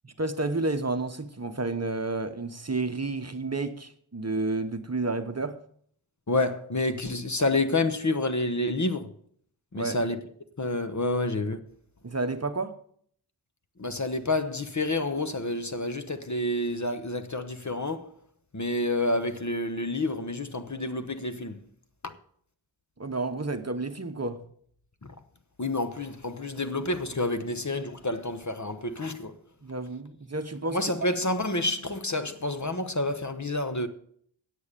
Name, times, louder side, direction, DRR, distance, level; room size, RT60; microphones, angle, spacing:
voice 1, 0.0-5.6 9.7-10.0 12.0-12.8 23.0-24.4 29.6-30.8, right 3 dB, 30° right, 0.9 m, -30 dB
voice 2, 6.3-9.1 9.7-10.2 10.6-11.6 13.8-18.1 18.5-21.6 22.0-22.2 25.0-25.1 25.6-29.4 30.7-33.9, left 2 dB, 35° left, 1.1 m, -29 dB
9.5 x 8.3 x 6.7 m
wide cardioid pair, 40°, 48 cm